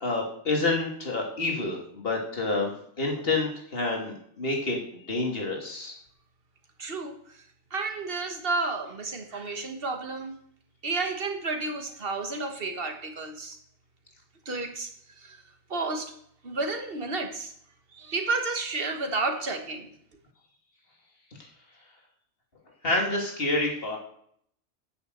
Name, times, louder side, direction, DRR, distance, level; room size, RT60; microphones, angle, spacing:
voice 1, 0.0-2.7 3.0-5.9 22.8-24.0, left 2 dB, 50° left, 0 dB, 2.6 m, -28 dB
voice 2, 6.8-7.4 7.7-10.4 10.8-13.6 14.4-16.1 16.4-17.5 17.9-19.9, right 3 dB, 50° right, 5 dB, 1.7 m, -31 dB
9.4 x 6.9 x 7.9 m, 0.67 s
omnidirectional pair, 1.2 m